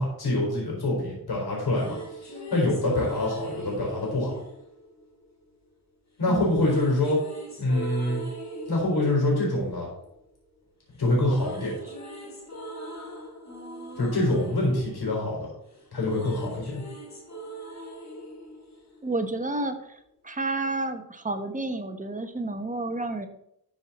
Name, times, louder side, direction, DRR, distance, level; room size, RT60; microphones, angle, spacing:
voice 1, 0.0-2.0 2.5-4.4 6.2-7.2 7.6-8.2 8.7-9.9 11.0-11.7 14.0-15.5 15.9-16.8, left 1 dB, 90° left, -3 dB, 3.9 m, -25 dB
sound 1, 1.5-5.6 6.5-10.7 11.0-19.5, right 1 dB, 45° left, 2.6 m, -40 dB
voice 2, 6.3-6.7 11.8-11.9 19.0-20.0 20.2-23.3, right 2 dB, 20° right, 6 dB, 1.0 m, -30 dB
12.5 x 4.7 x 4.1 m, 0.76 s
wide cardioid pair, 105°, 37 cm